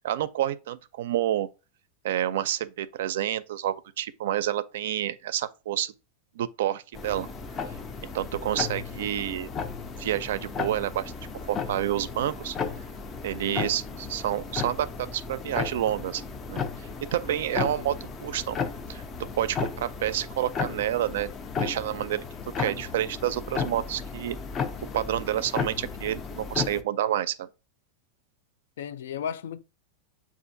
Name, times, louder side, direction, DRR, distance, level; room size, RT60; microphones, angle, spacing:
voice 1, 0.0-1.5 2.0-5.9 6.4-7.3 8.0-9.5 10.0-11.1 11.5-12.6 13.2-16.2 16.5-17.9 18.2-18.6 18.9-19.0 19.4-21.3 21.6-22.2 22.6-24.4 24.9-27.5, right 12 dB, 70° right, 0.4 m, -29 dB
sound 1, 6.9-26.8, left 5 dB, 20° left, 0.3 m, -34 dB
voice 2, 17.5-18.0 28.8-29.6, left 8 dB, 90° left, 0.4 m, -35 dB
7.0 x 2.5 x 2.6 m
supercardioid pair, 170°, 0 cm